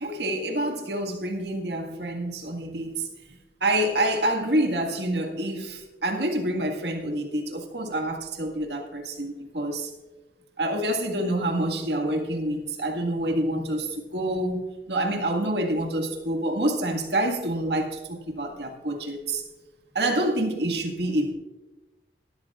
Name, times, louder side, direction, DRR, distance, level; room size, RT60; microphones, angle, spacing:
voice 1, 0.0-3.1 3.6-9.9 10.6-19.4 20.0-21.3, right 1 dB, 75° right, 1.8 m, -27 dB
18.5 x 12.5 x 2.4 m
head